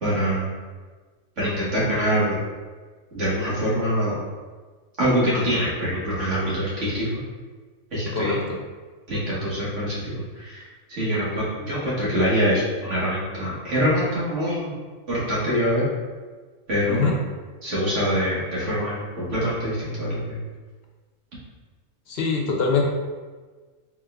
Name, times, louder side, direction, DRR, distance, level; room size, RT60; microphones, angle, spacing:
voice 1, 0.0-0.5 1.4-2.4 3.1-4.1 5.0-7.2 7.9-8.4 9.1-14.7 15.1-15.9 16.7-17.1 17.6-20.4, equal, 75° right, -8 dB, 1.8 m, -24 dB
voice 2, 22.1-22.8, left 4 dB, 60° left, 0 dB, 0.8 m, -23 dB
4.3 x 3.7 x 2.2 m, 1.4 s
omnidirectional pair, 1.3 m